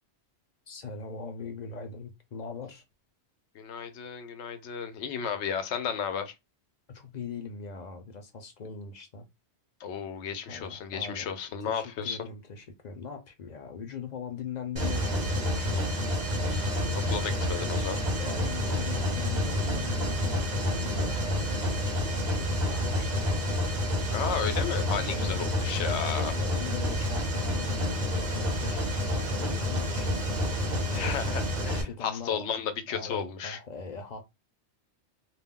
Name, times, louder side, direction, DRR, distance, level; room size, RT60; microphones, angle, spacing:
voice 1, 0.7-2.8 6.9-9.3 10.5-11.3 11.6-15.9 18.2-23.5 25.1-25.6 26.1-30.3 30.9-31.1 31.6-32.5 32.9-34.2, left 5 dB, 50° left, 0.6 m, -41 dB
voice 2, 3.6-6.3 9.8-12.2 16.4-18.0 24.1-26.3 30.9-31.4 31.7-33.6, left 7 dB, 90° left, 0.9 m, -33 dB
Mechanisms, 14.8-31.8, left 1 dB, 45° right, 0.9 m, -29 dB
2.3 x 2.1 x 3.5 m
omnidirectional pair, 1.1 m